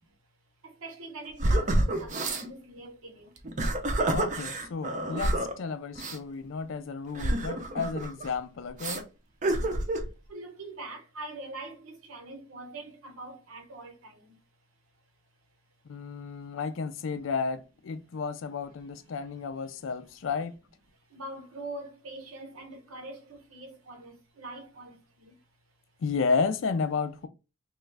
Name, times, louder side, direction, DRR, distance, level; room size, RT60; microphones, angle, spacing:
voice 1, 0.6-3.3 10.3-14.3 21.1-25.3, right 2 dB, 90° right, 0.9 m, -43 dB
sound 1, 1.4-2.5 3.4-5.5 6.0-6.2 7.1-8.3 8.8-9.0 9.4-10.1, right 1 dB, 35° right, 0.5 m, -28 dB
voice 2, 4.1-9.1 15.9-20.6 26.0-27.3, left 5 dB, 70° left, 0.4 m, -32 dB
3.1 x 2.4 x 3.2 m
head